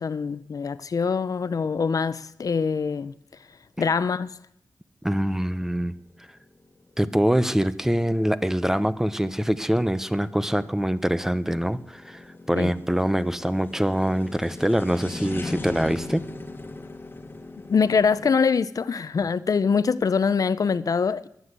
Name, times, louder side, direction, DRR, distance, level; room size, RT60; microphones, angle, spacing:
voice 1, 0.0-3.1 3.8-4.3 12.6-12.7 17.7-21.3, left 5 dB, 65° left, 0.7 m, -24 dB
voice 2, 5.0-5.9 7.0-16.2, equal, 5° right, 0.7 m, -24 dB
sound 1, 5.9-18.3, left 2 dB, 30° left, 1.5 m, -40 dB
21.0 x 8.0 x 8.1 m
wide cardioid pair, 105°, 7 cm